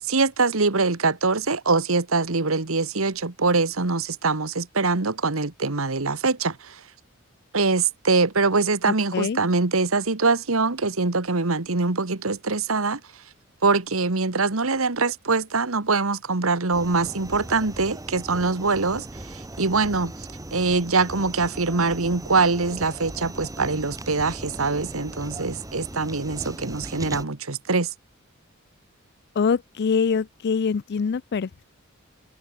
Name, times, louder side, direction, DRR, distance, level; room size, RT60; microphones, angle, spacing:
voice 1, 0.1-6.8 7.5-13.0 13.6-27.9, right 3 dB, 75° right, 1.6 m, -23 dB
voice 2, 8.9-9.4 29.4-31.6, left 5 dB, 50° left, 0.4 m, -24 dB
sound 1, 16.7-27.2, right 1 dB, 15° right, 1.6 m, -38 dB
head